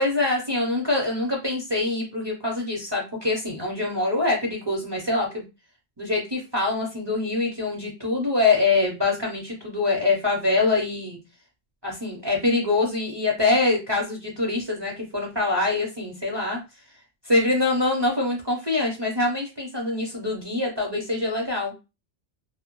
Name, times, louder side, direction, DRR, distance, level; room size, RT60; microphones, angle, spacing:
voice 1, 0.0-5.4 6.0-11.2 11.8-16.6 17.3-21.7, left 3 dB, 30° right, -1 dB, 0.5 m, -24 dB
2.1 x 2.1 x 3.0 m, 0.27 s
omnidirectional pair, 1.2 m